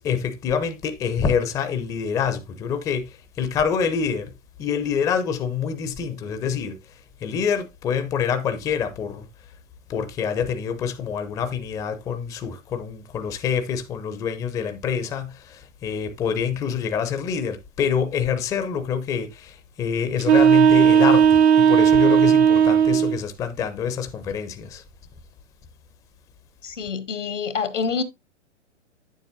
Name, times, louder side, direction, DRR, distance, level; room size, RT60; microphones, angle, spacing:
voice 1, 0.0-4.3 4.6-6.8 7.2-9.3 9.9-24.8, left 7 dB, 10° left, 0.4 m, -26 dB
sound 1, 20.2-23.2, right 8 dB, 65° right, 0.7 m, -15 dB
voice 2, 26.6-28.0, left 5 dB, 85° left, 1.3 m, -27 dB
8.8 x 7.3 x 2.4 m
hypercardioid pair, 120°, 36 cm